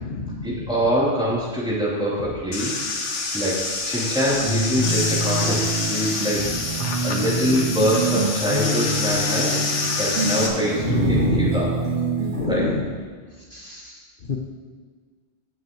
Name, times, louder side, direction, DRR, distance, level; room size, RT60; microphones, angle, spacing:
voice 1, 0.4-2.7 3.3-6.5 7.0-11.8 12.5-12.7, equal, 5° right, -9 dB, 3.3 m, -24 dB
sound 1, 2.5-10.5, left 3 dB, 85° left, 1.4 m, -27 dB
sound 2, 4.4-12.5, right 2 dB, 65° right, 1.8 m, -26 dB
voice 2, 10.9-11.5 12.4-12.8 13.5-13.8 14.3-14.4, left 3 dB, 50° left, 0 dB, 1.0 m, -25 dB
17.0 x 7.2 x 3.1 m, 1.5 s
omnidirectional pair, 1.2 m